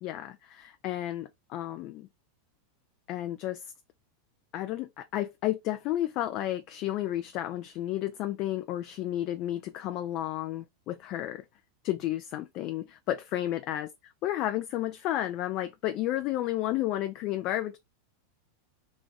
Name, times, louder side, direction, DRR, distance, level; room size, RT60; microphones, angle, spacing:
voice 1, 0.0-2.1 3.1-3.7 4.5-11.4 11.8-17.8, left 13 dB, 50° left, 0.3 m, -32 dB
3.1 x 2.5 x 3.5 m
hypercardioid pair, 100°, 0 cm